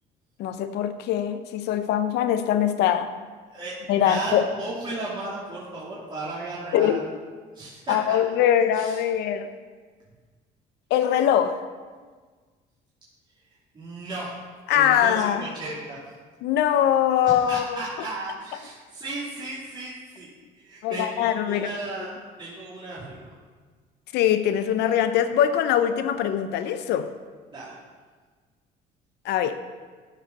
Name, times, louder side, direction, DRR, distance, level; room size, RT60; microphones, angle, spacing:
voice 1, 0.4-3.1 3.9-4.5 6.7-7.0 7.9-9.5 10.9-11.6 14.7-15.5 16.4-17.8 20.8-21.7 24.1-27.1 29.2-29.6, left 10 dB, 85° left, 10 dB, 0.7 m, -22 dB
voice 2, 4.0-7.0 7.5-8.2 8.7-9.0 13.7-14.3 14.7-16.0 17.4-20.3 20.6-23.3 27.5-27.7, right 2 dB, 25° right, -8 dB, 2.6 m, -35 dB
13.0 x 5.0 x 5.5 m, 1.5 s
cardioid pair, 110°, 17 cm